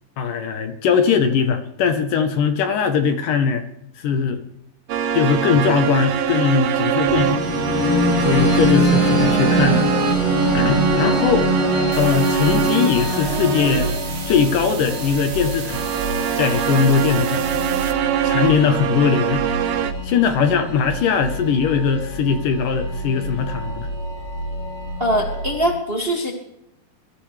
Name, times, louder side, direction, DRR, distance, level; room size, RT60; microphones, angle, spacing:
voice 1, 0.2-3.6 4.0-4.4 5.1-7.4 8.2-9.9 10.5-11.5 12.0-13.9 14.3-15.9 16.4-17.5 18.2-19.5 20.0-23.9, left 6 dB, 70° left, 7 dB, 2.5 m, -20 dB
sound 1, 4.9-14.2 15.7-19.9, right 8 dB, 80° right, 1.4 m, -23 dB
sound 2, 7.1-25.7, left 1 dB, 45° left, 3.7 m, -25 dB
sound 3, 11.9-17.9, right 7 dB, 60° right, 2.8 m, -35 dB
voice 2, 25.0-26.3, equal, 20° right, 0 dB, 1.9 m, -22 dB
22.5 x 14.0 x 3.4 m, 0.78 s
omnidirectional pair, 4.2 m